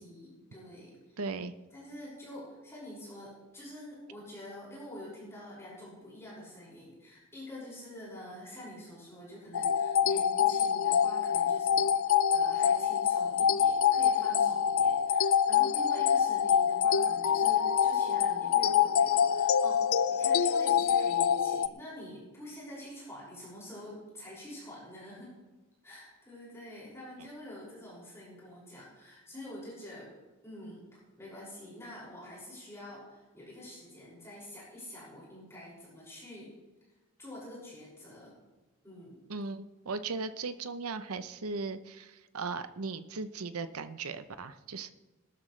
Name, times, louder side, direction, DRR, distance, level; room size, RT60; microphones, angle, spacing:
voice 1, 0.0-1.2 1.7-25.3 25.8-30.1 30.4-30.8 31.1-36.5 37.2-38.3 38.8-39.2, left 1 dB, 10° left, -7 dB, 6.0 m, -47 dB
voice 2, 1.2-1.5 27.2-27.3 39.3-44.9, right 4 dB, 85° right, 11 dB, 0.8 m, -37 dB
sound 1, 9.5-21.7, left 8 dB, 70° left, 0.5 m, -26 dB
20.5 x 12.5 x 3.3 m, 1.1 s
head